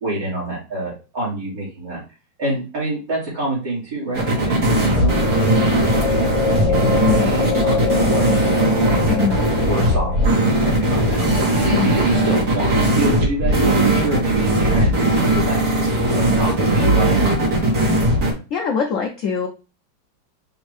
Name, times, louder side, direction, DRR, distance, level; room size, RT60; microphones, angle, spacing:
voice 1, 0.0-2.0 2.4-6.3 6.7-9.2 9.7-11.3 11.6-17.2, right 2 dB, 70° right, -8 dB, 2.7 m, -27 dB
sound 1, 4.1-12.2, left 6 dB, 60° left, 1.3 m, -26 dB
sound 2, 4.1-18.3, right 1 dB, 55° right, 1.8 m, -18 dB
voice 2, 18.5-19.5, left 6 dB, 90° left, 3 dB, 0.7 m, -23 dB
6.2 x 2.6 x 3.1 m, 0.32 s
omnidirectional pair, 2.1 m